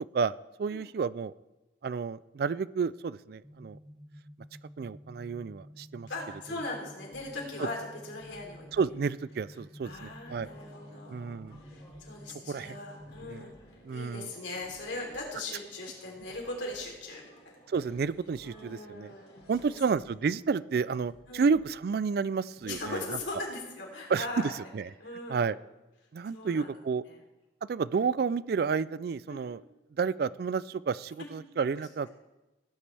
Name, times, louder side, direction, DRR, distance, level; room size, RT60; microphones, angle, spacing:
voice 1, 0.1-1.3 1.8-3.8 4.8-6.1 6.5-6.6 7.6-7.7 8.7-10.5 11.1-11.6 12.3-12.8 13.3-13.5 13.8-14.3 17.7-19.1 19.5-23.2 24.1-24.9 25.3-25.6 26.1-27.0 27.7-29.6 29.9-32.2, right 5 dB, 55° right, 18 dB, 0.3 m, -31 dB
sound 1, 3.4-13.4, equal, 5° right, 0.8 m, -51 dB
voice 2, 6.1-8.7 9.8-13.5 13.9-17.5 18.4-19.8 21.3-21.5 22.6-24.5 25.0-25.6 26.3-26.7 27.1-27.2 29.3-29.5, left 2 dB, 85° left, -1 dB, 3.4 m, -39 dB
sound 2, 7.1-24.3, equal, 50° left, 2.3 m, -61 dB
sound 3, 10.2-19.8, equal, 35° left, 3.0 m, -59 dB
17.5 x 9.8 x 3.4 m, 1.0 s
head